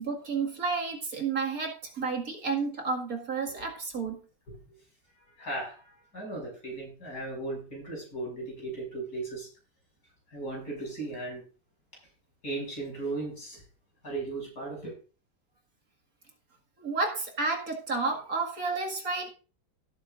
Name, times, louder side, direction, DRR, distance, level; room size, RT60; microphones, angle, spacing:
voice 1, 0.0-4.2 16.8-19.3, right 4 dB, 55° right, 1 dB, 2.4 m, -31 dB
voice 2, 5.4-9.5 10.3-11.4 12.4-13.6 14.0-14.9, right 2 dB, 60° left, -1 dB, 7.2 m, -36 dB
17.5 x 9.1 x 2.5 m, 0.36 s
omnidirectional pair, 1.9 m